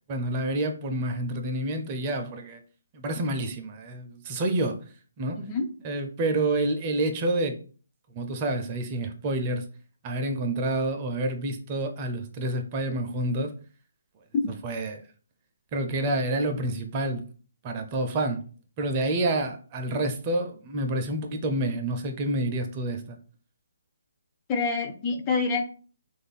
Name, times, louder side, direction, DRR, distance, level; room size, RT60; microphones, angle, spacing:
voice 1, 0.1-2.6 2.9-4.8 5.2-5.4 5.8-7.6 8.1-9.6 10.0-13.5 14.6-15.0 15.7-17.2 17.6-18.4 18.8-23.2, right 1 dB, 30° right, 0.5 m, -28 dB
voice 2, 24.5-25.6, left 4 dB, 20° left, 0.5 m, -27 dB
3.1 x 2.4 x 4.0 m
figure-of-eight pair, 145°, 0 cm